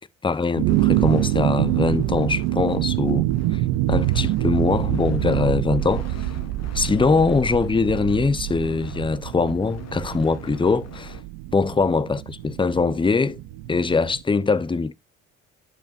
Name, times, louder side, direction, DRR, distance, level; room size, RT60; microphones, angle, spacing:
voice 1, 0.2-3.3 3.5-3.6 3.9-6.1 6.7-11.1 11.5-13.4 13.7-14.9, left 4 dB, 15° left, 0.7 m, -22 dB
sound 1, 0.5-14.2, right 15 dB, 75° right, 0.6 m, -26 dB
sound 2, 0.7-11.2, left 7 dB, 50° left, 1.3 m, -44 dB
10.0 x 5.8 x 2.6 m
hypercardioid pair, 55°, 34 cm